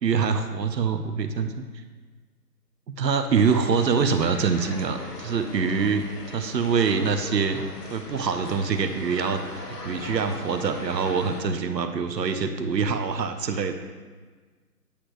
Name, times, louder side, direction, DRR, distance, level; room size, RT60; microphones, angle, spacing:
voice 1, 0.0-1.6 2.9-7.6 7.9-13.7, right 5 dB, 90° right, 8 dB, 0.9 m, -25 dB
sound 1, 3.4-11.4, left 2 dB, 70° left, 1.6 m, -39 dB
8.5 x 8.2 x 3.2 m, 1.4 s
hypercardioid pair, 175°, 49 cm